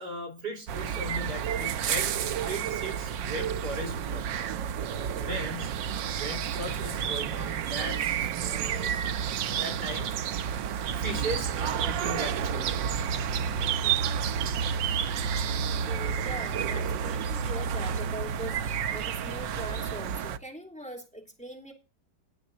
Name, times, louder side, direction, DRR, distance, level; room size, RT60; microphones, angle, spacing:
voice 1, 0.0-4.3 5.2-5.7 6.2-9.0 9.6-10.2 11.0-12.7, right 1 dB, 65° right, 2 dB, 5.2 m, -37 dB
sound 1, 0.7-20.4, right 8 dB, 85° right, 1.5 m, -30 dB
voice 2, 4.9-5.4 13.6-14.0 15.9-21.7, right 1 dB, 5° left, 1 dB, 2.9 m, -42 dB
18.0 x 6.4 x 4.0 m, 0.29 s
omnidirectional pair, 1.9 m